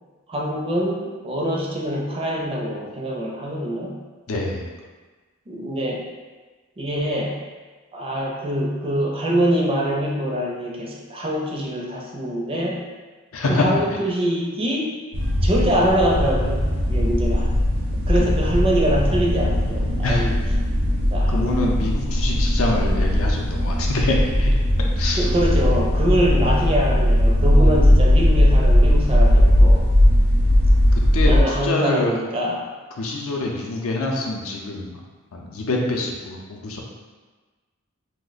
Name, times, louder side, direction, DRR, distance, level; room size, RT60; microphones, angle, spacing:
voice 1, 0.3-4.0 5.5-6.1 6.8-7.4 7.9-12.8 13.5-14.9 15.4-17.5 18.1-20.3 21.1-21.7 25.2-29.9 31.3-32.7, equal, 25° right, -2 dB, 0.4 m, -24 dB
voice 2, 4.3-4.7 13.3-13.6 18.2-18.3 20.0-20.3 21.3-24.5 25.0-25.3 31.1-32.1 33.0-35.0 35.3-36.8, left 2 dB, 75° left, -1 dB, 0.5 m, -25 dB
sound 1, 15.1-31.4, equal, 75° right, 0.7 m, -18 dB
2.8 x 2.1 x 3.9 m, 1.3 s
head